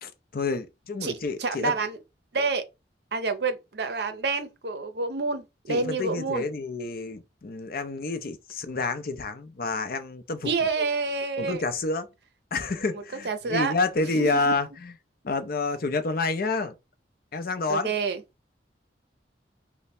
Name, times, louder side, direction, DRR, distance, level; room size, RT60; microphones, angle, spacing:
voice 1, 0.0-1.7 5.7-10.5 11.4-12.1 12.5-14.9 15.2-16.7 17.3-17.9, left 3 dB, 55° left, 0.5 m, -29 dB
voice 2, 1.4-2.0 2.3-2.6 3.1-6.4 10.4-11.6 12.9-13.7 14.2-14.5 17.7-18.2, right 4 dB, 60° right, 0.6 m, -28 dB
3.2 x 2.1 x 4.2 m
head